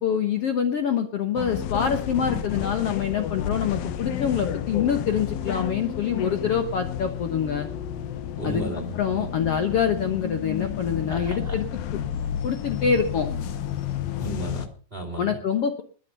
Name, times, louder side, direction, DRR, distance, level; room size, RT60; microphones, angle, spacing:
voice 1, 0.0-7.7 8.4-8.6 8.9-11.7 12.4-13.3 15.2-15.8, left 7 dB, 60° left, 6 dB, 1.6 m, -25 dB
sound 1, 1.4-14.7, left 9 dB, 90° left, 2.9 m, -31 dB
voice 2, 8.4-9.4 11.1-11.6 14.2-15.4, right 2 dB, 20° right, 6 dB, 1.8 m, -34 dB
21.5 x 8.3 x 5.4 m, 0.41 s
omnidirectional pair, 4.0 m